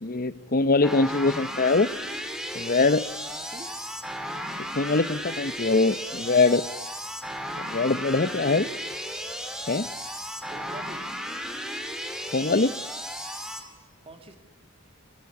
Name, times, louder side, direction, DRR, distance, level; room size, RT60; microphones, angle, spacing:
voice 1, 0.0-1.9 2.5-3.0 4.7-6.6 7.6-8.7 9.7-9.9 12.3-12.7, left 3 dB, 40° left, 15 dB, 0.9 m, -22 dB
sound 1, 0.8-13.6, equal, 5° right, 3.0 m, -35 dB
voice 2, 3.3-3.7 8.2-8.8 10.5-11.0 14.0-14.4, right 1 dB, 25° right, 6 dB, 3.0 m, -43 dB
24.5 x 22.5 x 8.6 m, 1.1 s
head